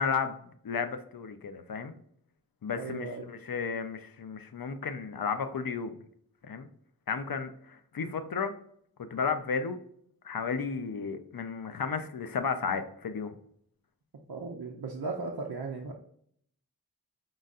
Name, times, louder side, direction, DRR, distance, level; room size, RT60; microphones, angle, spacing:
voice 1, 0.0-1.9 2.6-5.9 6.5-6.7 7.1-8.5 9.1-9.8 10.2-13.3, left 5 dB, 65° left, 8 dB, 0.6 m, -33 dB
voice 2, 2.8-3.3 14.3-15.9, right 3 dB, 80° right, -2 dB, 0.7 m, -36 dB
5.2 x 3.9 x 2.4 m, 0.66 s
cardioid pair, 45°, 37 cm